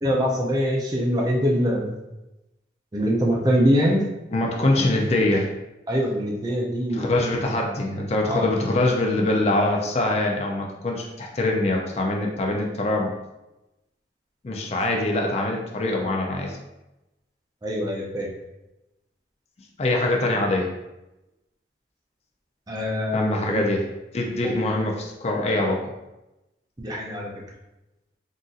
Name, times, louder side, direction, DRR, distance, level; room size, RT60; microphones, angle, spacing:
voice 1, 0.0-2.0 2.9-4.0 5.9-7.2 8.3-8.5 17.6-18.3 22.7-23.6 24.4-24.5 26.8-27.3, equal, 20° right, -2 dB, 0.5 m, -23 dB
voice 2, 4.3-5.5 6.9-13.1 14.4-16.6 19.8-20.7 23.1-23.9 24.1-25.8, left 2 dB, 35° left, 0 dB, 0.4 m, -23 dB
3.9 x 2.6 x 2.4 m, 0.97 s
head